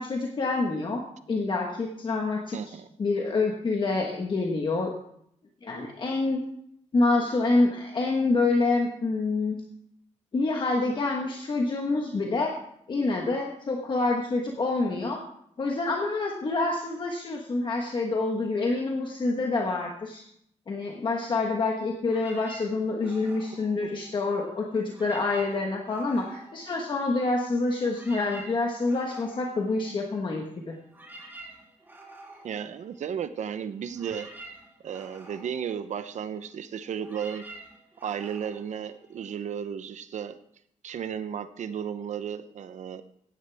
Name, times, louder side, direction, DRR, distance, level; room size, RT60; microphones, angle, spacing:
voice 1, 0.0-2.7 3.0-4.9 5.6-6.4 6.9-9.6 10.3-12.6 12.9-15.2 15.6-20.2 20.7-30.7, left 3 dB, 40° left, 1 dB, 1.3 m, -27 dB
voice 2, 2.5-2.9 23.7-23.9 32.4-34.3 34.8-37.4 38.0-40.4 40.8-43.0, right 8 dB, 70° right, 12 dB, 0.7 m, -34 dB
sound 1, 22.0-24.5 24.8-27.4 27.7-39.6, right 2 dB, 15° right, 2.9 m, -49 dB
16.0 x 10.5 x 3.4 m, 0.71 s
wide cardioid pair, 160°, 12 cm